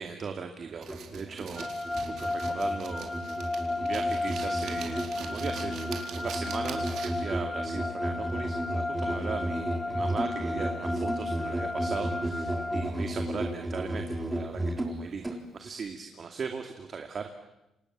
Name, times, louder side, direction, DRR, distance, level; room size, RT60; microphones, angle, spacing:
voice 1, 0.0-1.7 2.2-3.1 3.8-5.7 6.2-17.5, right 5 dB, 45° right, 5 dB, 2.4 m, -38 dB
Musical instrument, 0.8-15.4, right 1 dB, 15° right, 3.5 m, -34 dB
sound 1, 0.8-7.3, right 7 dB, 70° right, 4.4 m, -43 dB
sound 2, 1.6-12.9, left 2 dB, 15° left, 1.9 m, -34 dB
28.5 x 25.5 x 7.5 m, 0.93 s
cardioid pair, 90°, 0 cm